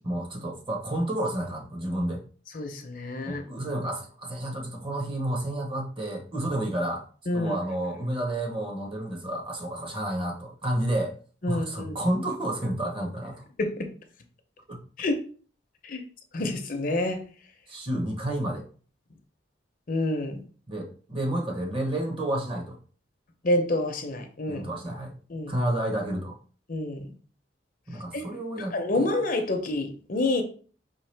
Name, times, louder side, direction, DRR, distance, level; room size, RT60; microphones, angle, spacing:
voice 1, 0.0-2.2 3.2-7.0 7.3-11.1 11.5-13.4 14.7-14.8 17.7-18.7 20.7-22.8 24.5-25.1 25.5-26.4 27.9-29.1, right 1 dB, 30° right, 1 dB, 1.0 m, -30 dB
voice 2, 2.5-3.4 7.3-7.5 11.4-12.0 13.6-13.9 15.0-15.2 15.8-16.0 16.3-17.2 19.9-20.4 23.4-24.6 25.3-25.5 26.7-27.1 28.1-28.3 28.6-30.4, left 2 dB, 50° left, 6 dB, 0.7 m, -28 dB
4.6 x 3.4 x 3.3 m, 0.41 s
head